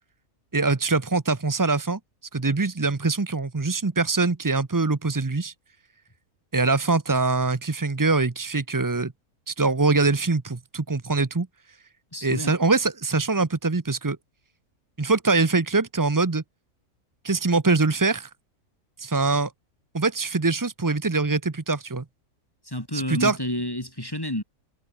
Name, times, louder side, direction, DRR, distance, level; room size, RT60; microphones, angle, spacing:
voice 1, 0.5-2.0 2.3-5.5 6.5-9.1 9.5-11.5 12.2-14.2 15.0-16.4 17.2-18.3 19.0-19.5 19.9-22.0 22.9-23.4, right 3 dB, 20° right, 0.5 m, -23 dB
voice 2, 12.1-12.5 22.7-24.4, left 1 dB, 15° left, 3.6 m, -30 dB
omnidirectional pair, 1.6 m